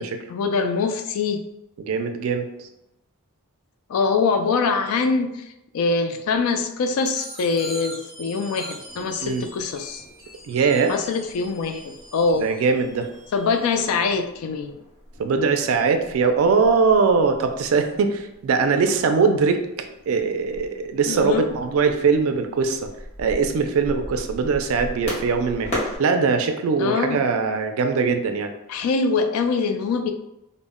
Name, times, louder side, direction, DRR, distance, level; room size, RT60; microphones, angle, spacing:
voice 1, 0.0-1.4 3.9-10.0 10.9-12.5 13.3-14.8 21.1-21.5 26.8-27.2 28.7-30.1, left 4 dB, 75° left, 6 dB, 0.3 m, -24 dB
voice 2, 1.8-2.5 9.2-9.4 10.5-10.9 12.4-13.1 15.2-22.9 23.2-28.5, right 5 dB, 65° right, 6 dB, 0.3 m, -21 dB
sound 1, 7.0-13.9, right 1 dB, ahead, 0.9 m, -42 dB
sound 2, 8.8-26.0, equal, 30° left, 0.8 m, -39 dB
2.1 x 2.0 x 3.5 m, 0.88 s
head